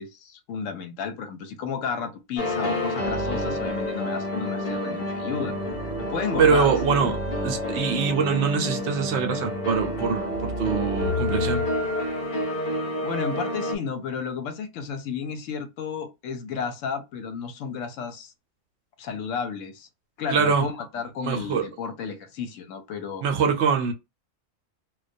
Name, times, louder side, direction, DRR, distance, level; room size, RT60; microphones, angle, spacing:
voice 1, 0.0-5.6 6.0-7.0 13.0-18.3 19.0-19.9 20.2-23.2, left 6 dB, 90° left, 1.0 m, -32 dB
sound 1, 2.4-13.8, left 1 dB, 50° left, 0.8 m, -28 dB
voice 2, 6.4-7.2 7.4-11.6 20.3-20.7 21.2-21.6 23.2-23.9, right 6 dB, 70° right, 0.8 m, -23 dB
2.2 x 2.2 x 2.5 m
omnidirectional pair, 1.3 m